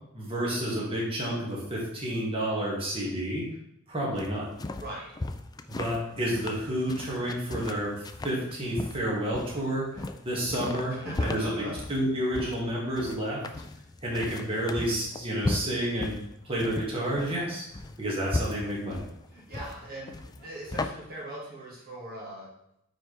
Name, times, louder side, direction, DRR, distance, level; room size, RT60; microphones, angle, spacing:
voice 1, 0.1-3.5 3.9-4.5 5.7-7.9 8.2-10.9 11.2-11.5 11.9-13.4 14.0-16.2 16.4-17.6 18.0-19.0, right 1 dB, 25° right, -5 dB, 2.0 m, -30 dB
sound 1, 4.1-20.9, left 2 dB, 20° left, 0.3 m, -36 dB
voice 2, 4.8-5.1 10.9-11.7 19.3-22.5, right 1 dB, 45° right, -5 dB, 1.8 m, -40 dB
9.0 x 4.4 x 3.3 m, 0.77 s
head